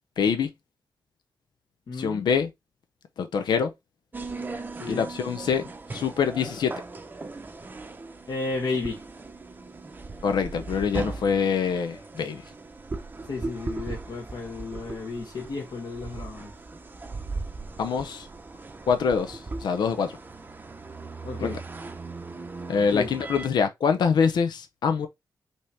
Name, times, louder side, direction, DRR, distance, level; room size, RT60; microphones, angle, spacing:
voice 1, 0.2-0.5 2.0-2.5 3.2-3.7 4.9-5.6 5.9-6.7 10.2-12.4 17.8-18.3 18.9-20.1 21.4-21.6 22.7-25.1, left 6 dB, 80° left, 0.7 m, -25 dB
voice 2, 1.9-2.2 4.8-5.1 8.3-9.0 13.3-16.5 21.2-21.6 22.9-23.1, left 3 dB, 65° left, 1.4 m, -33 dB
sound 1, 4.1-23.5, right 3 dB, 25° right, 0.7 m, -38 dB
5.4 x 2.9 x 3.3 m
wide cardioid pair, 140°, 7 cm